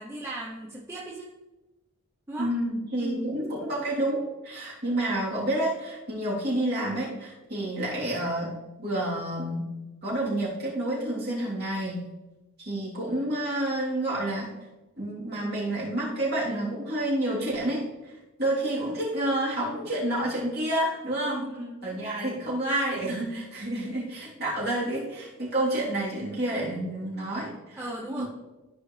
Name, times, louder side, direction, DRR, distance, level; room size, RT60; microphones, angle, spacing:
voice 1, 0.0-1.3 2.3-2.5 3.0-3.3 21.3-21.9 27.8-28.2, right 1 dB, 10° right, -4 dB, 0.8 m, -36 dB
voice 2, 2.4-9.7 10.0-12.1 12.6-14.5 15.0-18.1 18.4-21.5 21.8-27.8 28.2-28.3, right 1 dB, 45° right, -6 dB, 3.3 m, -29 dB
14.0 x 5.1 x 3.3 m, 1.1 s
head